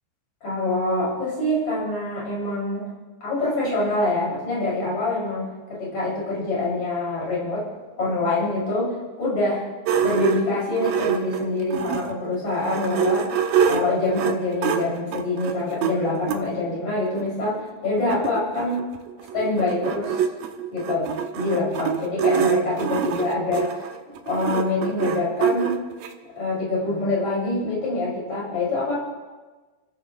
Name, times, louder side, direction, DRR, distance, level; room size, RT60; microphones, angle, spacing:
voice 1, 0.4-2.9 3.2-7.7 8.0-9.7 10.0-13.3 13.7-18.8 19.3-20.2 20.7-25.8 26.4-29.0, left 2 dB, 50° left, -6 dB, 7.7 m, -25 dB
sound 1, 9.9-12.2 12.6-16.4 17.2-17.3 17.6-17.7 17.9-26.1, right 8 dB, 85° right, 2.8 m, -25 dB
27.5 x 16.0 x 3.2 m, 1.3 s
omnidirectional pair, 4.0 m